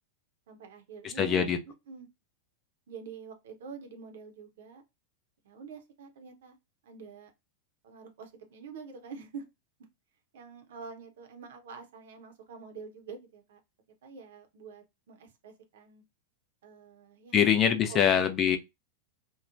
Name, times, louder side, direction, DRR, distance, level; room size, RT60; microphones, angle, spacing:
voice 1, 0.5-2.1 2.9-4.8 5.4-6.6 6.8-7.3 7.8-9.5 10.3-13.6 14.0-16.0 16.6-17.4 17.9-18.2, right 5 dB, 60° right, 0.6 m, -46 dB
voice 2, 1.0-1.6 17.3-18.6, left 8 dB, 30° left, 0.5 m, -24 dB
3.0 x 2.0 x 2.4 m
figure-of-eight pair, 90°, 0 cm